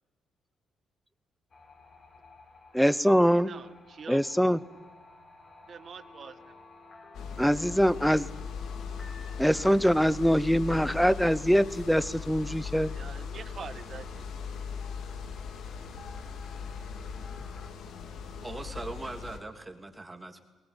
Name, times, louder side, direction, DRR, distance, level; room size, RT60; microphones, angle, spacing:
sound 1, 1.5-17.7, left 4 dB, 40° left, 4.8 m, -52 dB
voice 1, 2.7-3.5 4.1-4.6 7.4-8.3 9.4-12.9, equal, ahead, 17 dB, 0.8 m, -23 dB
voice 2, 3.2-4.2 5.7-6.5 12.9-14.2, right 6 dB, 50° right, 10 dB, 1.4 m, -45 dB
sound 2, 7.1-19.4, left 6 dB, 75° left, 2.4 m, -39 dB
voice 3, 18.4-20.4, right 2 dB, 20° right, 4 dB, 3.0 m, -40 dB
21.5 x 19.5 x 9.9 m, 1.2 s
cardioid pair, 90°, 0 cm